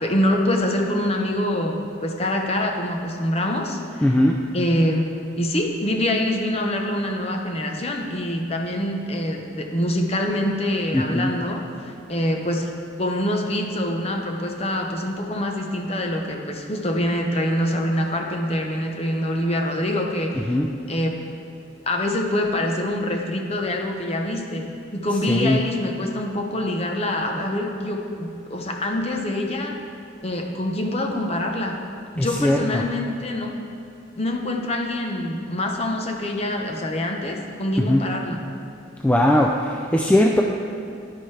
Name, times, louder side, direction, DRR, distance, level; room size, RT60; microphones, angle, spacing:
voice 1, 0.0-4.1 4.5-11.6 12.1-12.7 13.0-20.6 20.9-21.2 21.8-24.7 24.9-29.7 30.2-31.8 32.1-33.5 34.1-38.4, left 1 dB, 30° left, 2 dB, 0.8 m, -25 dB
voice 2, 4.0-4.4 10.9-11.3 20.5-20.7 25.3-25.6 32.2-32.8 37.8-38.1 39.0-40.4, left 1 dB, 5° left, 0 dB, 0.3 m, -19 dB
10.5 x 10.0 x 3.3 m, 2.5 s
head